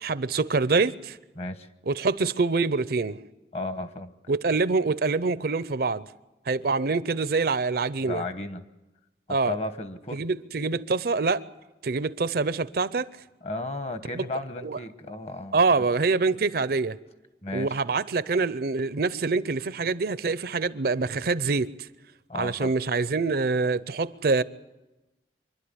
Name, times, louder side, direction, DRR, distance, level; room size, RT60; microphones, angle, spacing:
voice 1, 0.0-1.2 1.9-3.2 4.3-6.1 6.5-8.2 9.3-9.5 10.1-11.4 11.8-13.1 14.1-14.3 14.6-14.8 15.5-17.0 17.5-21.7 22.3-24.4, right 4 dB, 55° right, 0.6 m, -25 dB
voice 2, 1.3-1.7 3.5-4.1 8.1-8.6 9.5-10.2 13.4-15.6 17.4-17.8 22.3-22.7, left 2 dB, 35° left, 1.2 m, -34 dB
25.5 x 12.0 x 9.8 m
head